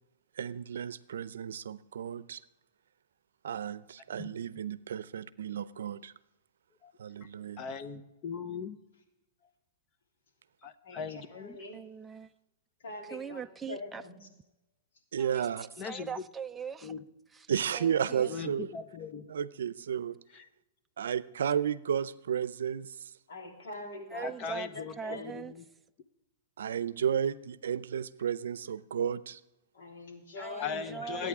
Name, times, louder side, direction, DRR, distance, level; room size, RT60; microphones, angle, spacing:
voice 1, 0.4-2.4 3.4-6.1 7.0-7.6 15.1-15.7 17.5-18.7 19.3-20.2 21.0-23.1 26.6-29.4, right 8 dB, 85° right, 0.5 m, -33 dB
voice 2, 7.6-8.8 10.6-11.6 15.8-16.1 16.8-17.0 18.3-19.3 20.3-20.4 24.2-25.6 30.6-31.3, left 6 dB, 35° left, 1.0 m, -39 dB
voice 3, 10.8-11.8 12.8-13.4 13.7-14.3 23.3-24.3 24.6-25.3 29.7-31.3, left 2 dB, 80° left, 3.3 m, -44 dB
voice 4, 11.7-12.3 13.0-14.0 15.2-16.9 17.3-18.3 24.1-24.7 25.0-25.5 30.4-31.3, right 6 dB, 10° right, 0.4 m, -41 dB
21.5 x 9.1 x 3.6 m
hypercardioid pair, 140°, 0 cm